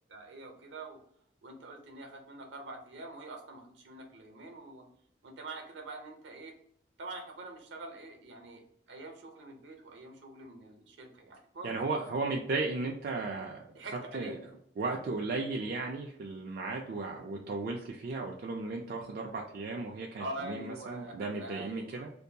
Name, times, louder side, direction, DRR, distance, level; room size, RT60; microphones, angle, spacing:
voice 1, 0.1-1.0 1.4-4.9 5.2-6.5 7.0-8.6 8.9-11.7 13.7-14.4 20.2-22.0, right 2 dB, 75° right, 3 dB, 0.7 m, -45 dB
voice 2, 11.6-13.7 14.1-14.4 14.8-22.1, right 3 dB, 50° right, 0 dB, 0.3 m, -35 dB
2.6 x 2.2 x 2.7 m, 0.70 s
head